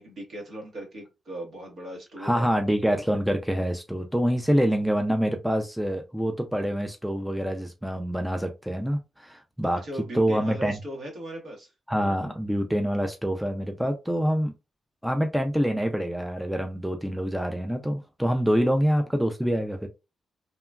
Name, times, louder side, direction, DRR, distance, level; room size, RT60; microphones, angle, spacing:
voice 1, 0.0-2.5 9.7-11.7, right 1 dB, 65° right, 1.2 m, -38 dB
voice 2, 2.2-9.8 10.1-10.8 11.9-14.5 15.0-19.9, equal, ahead, 0.3 m, -26 dB
2.9 x 2.3 x 2.2 m
cardioid pair, 115°, 0 cm